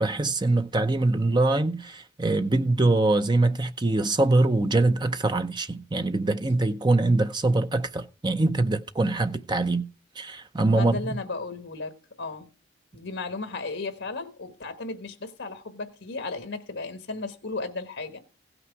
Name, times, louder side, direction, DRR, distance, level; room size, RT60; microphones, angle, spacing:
voice 1, 0.0-9.9 10.2-11.0, right 2 dB, 25° right, 0.6 m, -23 dB
voice 2, 10.7-12.5 12.9-18.2, left 3 dB, 70° left, 1.3 m, -35 dB
16.0 x 6.0 x 4.7 m
head